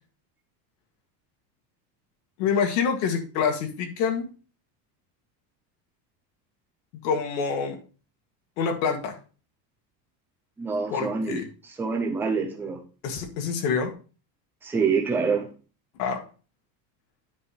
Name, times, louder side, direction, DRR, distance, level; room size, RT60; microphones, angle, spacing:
voice 1, 2.4-4.3 6.9-7.8 8.6-9.2 10.9-11.4 13.0-13.9 16.0-16.2, left 6 dB, 75° left, 4 dB, 1.9 m, -26 dB
voice 2, 10.6-12.8 14.6-15.5, right 5 dB, 5° right, 0 dB, 0.3 m, -26 dB
9.5 x 3.4 x 5.6 m, 0.36 s
cardioid pair, 175°, 49 cm